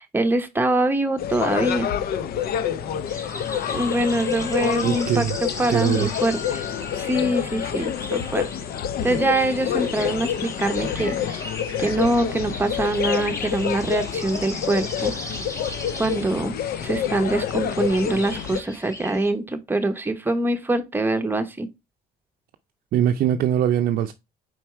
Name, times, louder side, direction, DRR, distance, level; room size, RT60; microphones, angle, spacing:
voice 1, 0.0-1.9 3.7-6.6 6.9-8.5 9.0-11.5 11.8-15.1 16.0-16.6 16.8-21.7, right 2 dB, 10° right, 0.9 m, -24 dB
sound 1, 1.2-18.6, left 9 dB, 65° left, 0.6 m, -28 dB
sound 2, 3.1-19.3, left 1 dB, 20° left, 1.2 m, -38 dB
voice 2, 4.8-5.4 5.7-6.1 22.9-24.1, right 10 dB, 60° right, 0.5 m, -22 dB
4.7 x 4.5 x 4.4 m
cardioid pair, 110°, 17 cm